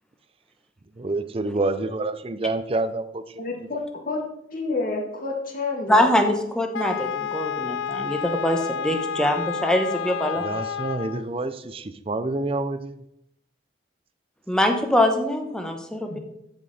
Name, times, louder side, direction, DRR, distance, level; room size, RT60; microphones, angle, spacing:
voice 1, 1.0-3.5 10.4-13.0, right 2 dB, 30° right, 11 dB, 0.5 m, -28 dB
voice 2, 3.4-4.2 4.5-6.2 16.1-16.2, left 3 dB, 50° left, -1 dB, 2.3 m, -29 dB
voice 3, 5.9-10.4 14.5-16.2, left 1 dB, 5° left, 4 dB, 1.1 m, -23 dB
Wind instrument woodwind instrument, 6.7-11.3, left 7 dB, 90° left, 0.3 m, -30 dB
13.0 x 5.3 x 4.2 m, 0.79 s
head